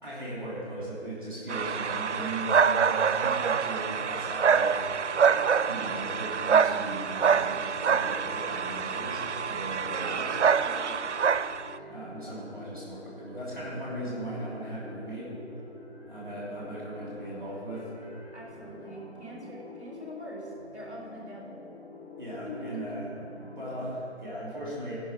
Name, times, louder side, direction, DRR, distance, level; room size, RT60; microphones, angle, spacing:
voice 1, 0.0-4.7 5.7-10.4 11.9-15.3 16.1-17.9 22.2-23.1 23.6-24.9, right 1 dB, 20° right, -7 dB, 2.6 m, -38 dB
sound 1, 1.5-11.7, right 6 dB, 85° right, 0.5 m, -26 dB
sound 2, 4.6-24.0, left 2 dB, 55° left, 1.8 m, -47 dB
voice 2, 10.6-11.0 18.3-21.6 22.7-22.8, equal, 15° left, -12 dB, 2.6 m, -43 dB
15.5 x 5.8 x 6.2 m, 2.7 s
figure-of-eight pair, 180°, 34 cm